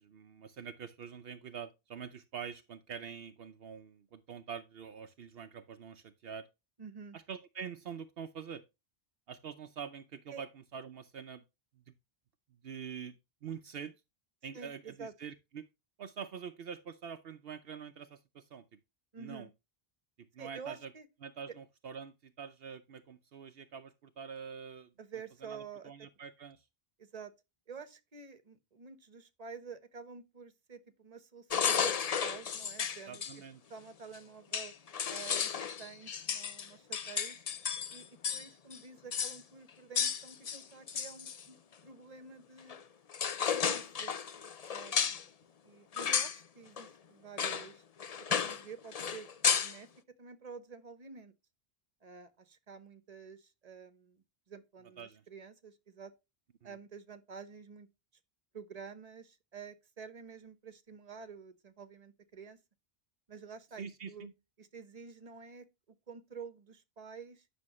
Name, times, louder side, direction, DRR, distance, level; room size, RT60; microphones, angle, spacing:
voice 1, 0.0-6.5 7.1-8.6 9.3-11.4 11.7-11.9 12.5-13.9 14.4-15.7 16.0-18.8 19.2-19.5 20.2-20.9 21.2-24.9 25.4-26.7 33.1-33.6 44.9-45.1 55.0-55.2 56.6-56.8 63.8-64.3, right 7 dB, 70° right, 0.9 m, -45 dB
voice 2, 6.8-7.2 10.3-10.4 14.5-15.1 19.1-19.5 20.4-21.1 25.0-26.1 27.0-27.3 27.7-33.4 33.7-34.7 35.1-37.4 37.9-41.6 41.8-42.8 43.5-44.2 44.7-45.3 45.6-47.8 48.3-49.9 50.2-51.3 52.0-56.1 56.6-57.9 58.5-62.6 63.3-64.3 64.6-67.5, right 5 dB, 40° right, 1.1 m, -49 dB
sound 1, 31.5-33.3 34.1-34.2 34.5-38.5 38.7-38.8 39.1-39.4 39.9-41.4 42.7-42.8 43.1-45.2 45.9-46.4 46.8-46.9 47.4-47.7 48.0-48.6 48.9-49.8, left 7 dB, 45° left, 0.6 m, -33 dB
9.6 x 6.3 x 3.0 m
omnidirectional pair, 1.0 m